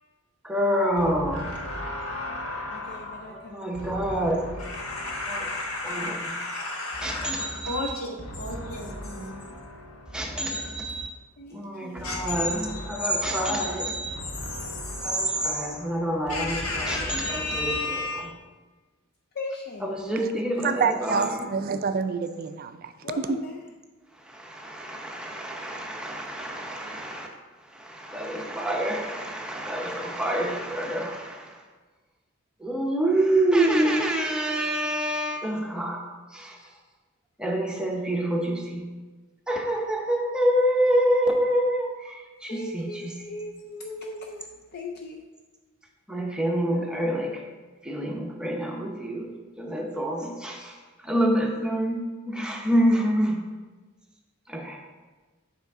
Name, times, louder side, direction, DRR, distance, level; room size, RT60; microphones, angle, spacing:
voice 1, 0.4-1.5 3.3-4.5 5.3-5.5 5.8-6.3 7.0-7.9 10.1-11.1 11.5-14.1 15.0-18.3 19.8-21.5 24.2-27.3 27.6-31.6 32.6-36.0 36.3-36.6 37.4-38.8 39.5-43.1 46.1-47.4 47.8-50.8 51.0-53.4 54.5-54.8, right 1 dB, 5° right, 0.7 m, -27 dB
voice 2, 1.1-10.5 12.0-18.3, left 2 dB, 80° left, 1.3 m, -34 dB
voice 3, 2.7-3.7 4.2-4.4 11.4-12.6 19.3-20.3 23.0-23.7 42.5-45.3, left 2 dB, 45° left, 0.4 m, -39 dB
voice 4, 20.6-22.9 23.3-23.4, right 5 dB, 45° right, 0.3 m, -27 dB
8.2 x 4.9 x 3.5 m
head